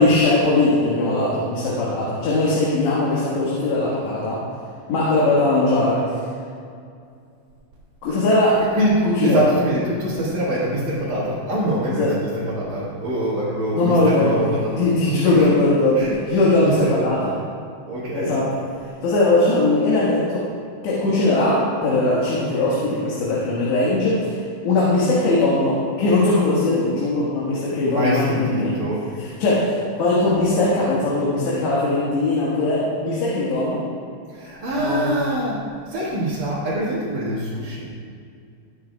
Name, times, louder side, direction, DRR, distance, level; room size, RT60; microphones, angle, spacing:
voice 1, 0.0-4.4 4.9-6.0 8.0-8.6 9.0-9.4 12.0-12.1 13.7-14.4 14.8-17.3 18.1-18.5 19.0-20.4 20.8-24.4 24.6-28.8 29.2-33.8 34.7-35.1, left 2 dB, 65° left, -7 dB, 3.7 m, -20 dB
voice 2, 9.2-14.7 15.0-15.5 15.9-16.1 16.6-17.2 17.9-18.3 27.8-29.0 34.3-35.6 35.8-37.9, right 1 dB, 50° right, -10 dB, 2.9 m, -24 dB
20.0 x 9.1 x 2.4 m, 2.3 s
omnidirectional pair, 5.6 m